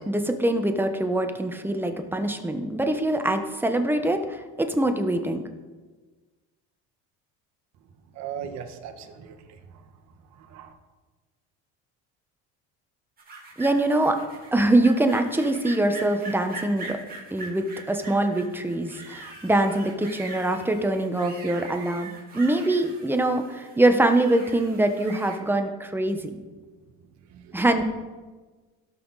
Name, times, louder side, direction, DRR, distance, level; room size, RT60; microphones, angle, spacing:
voice 1, 0.0-5.5 13.6-14.2 14.5-17.0 17.3-26.3 27.5-27.8, right 1 dB, 5° right, 6 dB, 1.1 m, -24 dB
voice 2, 8.1-9.6 10.4-10.7 27.4-27.5, right 8 dB, 65° right, 6 dB, 1.4 m, -38 dB
sound 1, 13.2-25.4, right 2 dB, 30° right, 3.1 m, -42 dB
17.5 x 5.9 x 4.1 m, 1.3 s
cardioid pair, 115°, 30 cm